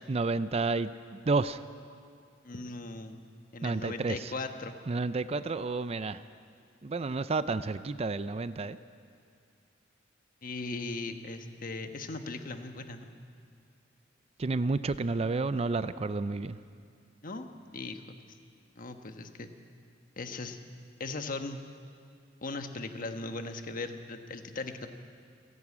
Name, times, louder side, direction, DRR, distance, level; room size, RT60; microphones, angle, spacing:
voice 1, 0.1-1.6 3.6-4.3 4.9-6.2 6.8-8.8 14.4-16.6, right 3 dB, 35° right, 13 dB, 0.5 m, -30 dB
voice 2, 2.4-3.2 3.5-4.7 10.4-13.2 17.2-17.5 17.7-18.0 18.8-19.5 20.2-20.6 21.0-21.6 22.4-24.9, left 3 dB, 45° left, 6 dB, 1.2 m, -38 dB
28.5 x 11.0 x 8.5 m, 2.4 s
head